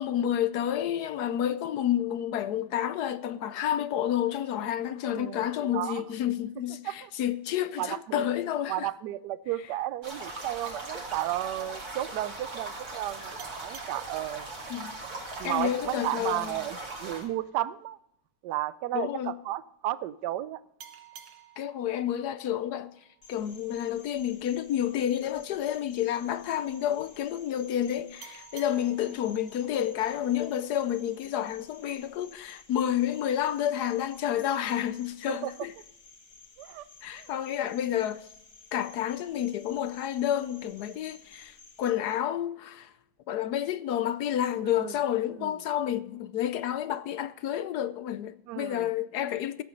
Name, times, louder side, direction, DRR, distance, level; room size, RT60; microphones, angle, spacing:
voice 1, 0.0-8.9 14.7-14.9 15.4-16.6 18.9-19.4 21.6-22.9 23.3-35.7 37.0-38.3 38.7-42.9 43.3-49.6, left 10 dB, 70° left, 1.0 m, -30 dB
voice 2, 5.1-5.5 5.7-6.0 6.8-7.1 7.8-8.3 8.7-14.5 15.4-18.0 18.4-20.6 35.3-35.5 36.6-36.8 37.1-37.3 44.7-44.9 45.4-45.5 48.5-48.9, right 14 dB, 70° right, 1.0 m, -33 dB
sound 1, 10.0-17.3, right 2 dB, 45° right, 3.2 m, -39 dB
sound 2, 13.4-16.6 20.8-24.0 28.2-31.2, right 8 dB, 85° right, 2.0 m, -54 dB
Cricket, 23.2-41.9, left 4 dB, 50° left, 2.1 m, -54 dB
14.5 x 8.5 x 5.2 m
omnidirectional pair, 2.2 m